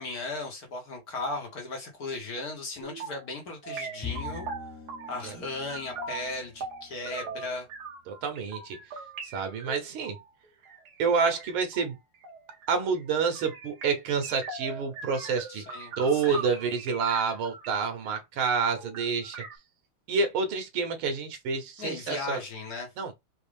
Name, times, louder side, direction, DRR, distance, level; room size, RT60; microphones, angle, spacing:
voice 1, 0.0-4.5 5.1-7.6 15.5-16.5 21.8-22.9, left 3 dB, 50° left, 1.9 m, -36 dB
sound 1, 2.8-3.3 3.6-5.4 5.7-17.8 18.0-18.1 18.4-19.6, right 4 dB, 55° right, 1.4 m, -41 dB
Bowed string instrument, 4.0-7.5, left 7 dB, 20° left, 0.5 m, -43 dB
voice 2, 8.1-8.8 9.3-10.2 11.0-12.0 12.7-15.6 16.0-19.4 20.1-22.4 23.0-23.1, right 5 dB, 85° right, 1.8 m, -28 dB
5.1 x 2.6 x 3.4 m
omnidirectional pair, 2.3 m